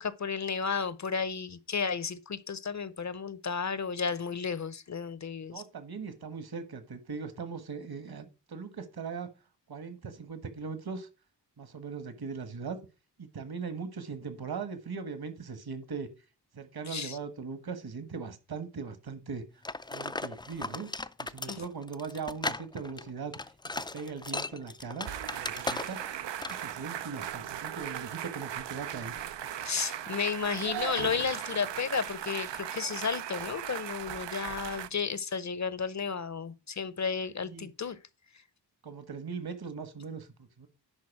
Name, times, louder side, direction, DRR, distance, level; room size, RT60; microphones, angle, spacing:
voice 1, 0.0-5.6 16.9-17.2 21.5-21.6 29.6-38.0, left 5 dB, 40° left, 0.7 m, -33 dB
voice 2, 5.5-9.3 9.7-11.1 11.6-12.8 13.2-16.1 16.5-19.4 19.9-20.9 21.2-23.3 23.8-26.0 26.5-29.2 37.4-37.7 38.8-40.7, right 5 dB, 60° right, 1.5 m, -39 dB
sound 1, 19.6-26.1 26.4-26.7, left 2 dB, 10° left, 0.3 m, -37 dB
sound 2, 25.0-34.9, right 10 dB, 90° right, 0.6 m, -38 dB
11.0 x 4.0 x 5.9 m
wide cardioid pair, 120°, 42 cm